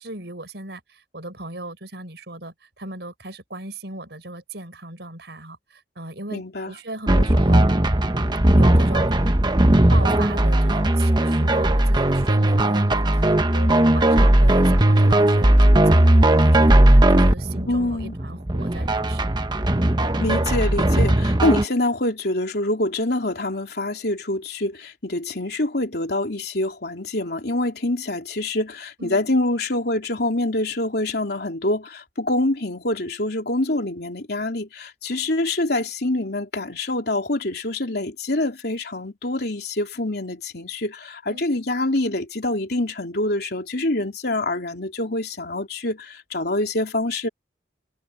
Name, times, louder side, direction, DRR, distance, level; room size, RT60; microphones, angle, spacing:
voice 1, 0.0-7.7 8.5-9.1 9.9-19.4 29.0-29.2 41.3-41.5, right 2 dB, 65° right, 7.0 m, -37 dB
voice 2, 6.3-6.7 17.7-18.1 20.2-47.3, left 2 dB, 60° left, 3.5 m, -25 dB
sound 1, 7.1-21.6, right 1 dB, 25° right, 1.1 m, -17 dB
open air
head